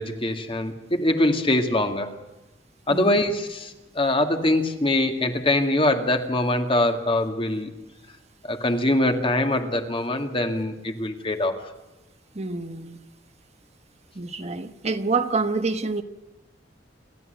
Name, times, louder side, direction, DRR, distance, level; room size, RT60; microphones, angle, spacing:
voice 1, 0.0-2.2 2.9-7.7 8.4-11.6, left 1 dB, 30° left, 5 dB, 2.2 m, -23 dB
voice 2, 12.3-13.0 14.1-16.0, right 4 dB, 40° right, 8 dB, 1.1 m, -27 dB
28.0 x 12.5 x 8.0 m, 1.0 s
head